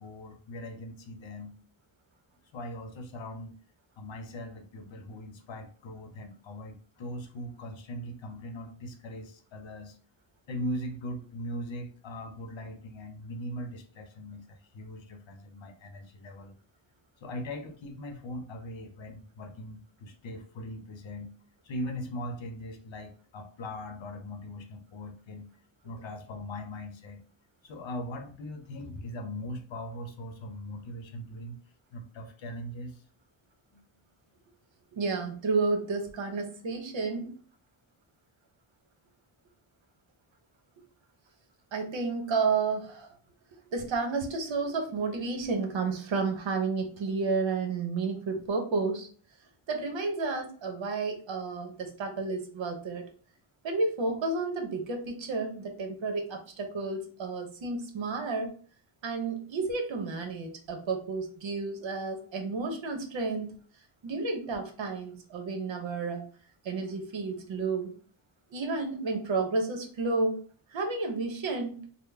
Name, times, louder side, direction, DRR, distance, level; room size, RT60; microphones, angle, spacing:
voice 1, 0.0-1.6 2.5-3.6 4.0-10.0 10.5-16.6 17.2-21.3 21.6-25.5 25.8-27.2 27.6-31.6 31.9-33.0 33.7-33.8, left 1 dB, 65° left, 6 dB, 0.8 m, -40 dB
voice 2, 34.9-37.3 41.7-43.1 43.7-49.1 49.7-53.0 53.6-58.5 59.0-63.6 64.0-66.3 66.6-67.9 68.5-70.4 70.7-71.9, right 3 dB, 65° right, 4 dB, 1.0 m, -31 dB
3.7 x 2.1 x 3.3 m, 0.43 s
wide cardioid pair, 120°, 49 cm